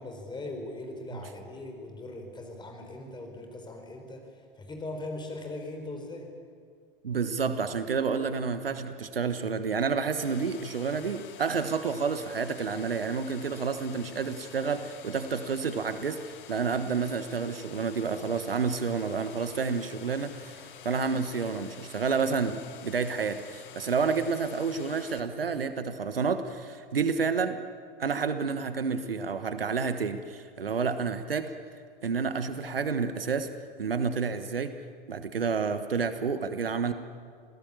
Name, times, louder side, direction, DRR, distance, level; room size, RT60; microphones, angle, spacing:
voice 1, 0.0-4.3 4.6-6.3, left 2 dB, 15° left, 4 dB, 4.7 m, -40 dB
voice 2, 7.0-16.2 16.5-27.6 28.0-31.5 32.0-33.5 33.8-34.7 35.1-36.9, right 5 dB, 75° right, 10 dB, 1.4 m, -29 dB
sound 1, 10.2-25.2, left 9 dB, 55° left, 2.0 m, -49 dB
26.5 x 18.0 x 8.8 m, 2.1 s
figure-of-eight pair, 90°, 29 cm